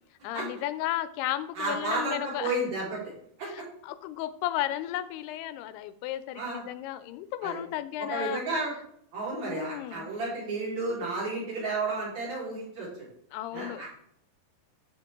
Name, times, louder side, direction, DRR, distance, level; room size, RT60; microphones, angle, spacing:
voice 1, 0.2-2.6 3.4-8.4 9.4-10.1 13.3-13.8, left 13 dB, 85° left, 14 dB, 2.6 m, -34 dB
voice 2, 1.6-3.1 3.4-3.5 6.4-6.6 7.4-7.6 8.0-8.7 9.1-13.1 13.5-13.9, right 2 dB, 55° right, -6 dB, 5.4 m, -32 dB
13.5 x 5.0 x 3.7 m, 0.67 s
omnidirectional pair, 4.6 m